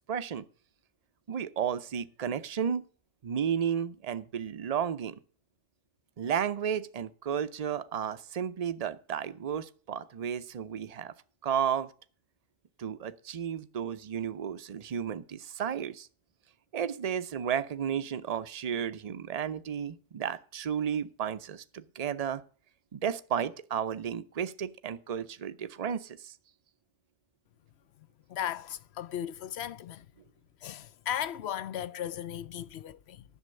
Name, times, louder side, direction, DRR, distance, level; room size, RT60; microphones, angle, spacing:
voice 1, 0.1-0.4 1.3-2.9 3.2-5.2 6.2-11.1 11.4-11.9 12.8-16.1 16.7-22.4 22.9-26.3, right 8 dB, 40° right, 0.7 m, -33 dB
voice 2, 28.3-30.1 30.6-33.2, left 10 dB, 65° left, 0.9 m, -36 dB
11.0 x 7.2 x 6.5 m
omnidirectional pair, 1.2 m